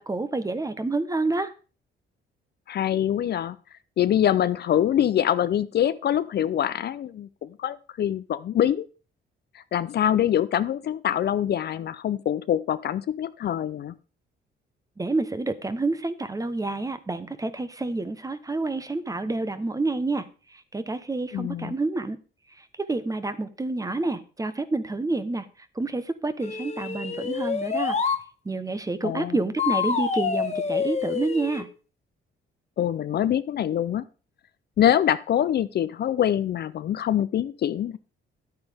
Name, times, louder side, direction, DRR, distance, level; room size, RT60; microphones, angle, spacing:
voice 1, 0.0-1.5 15.0-20.3 20.5-22.2 22.6-25.5 25.7-28.0 28.4-31.7, right 2 dB, 15° right, 12 dB, 1.0 m, -28 dB
voice 2, 2.7-3.6 4.0-8.9 9.5-13.9 21.3-21.7 29.0-29.4 32.8-34.0 34.8-38.0, left 10 dB, 55° left, 15 dB, 0.5 m, -24 dB
sound 1, 26.4-28.2 29.6-31.6, left 6 dB, 35° left, 1.3 m, -27 dB
11.0 x 8.9 x 3.5 m, 0.35 s
cardioid pair, 90°, 20 cm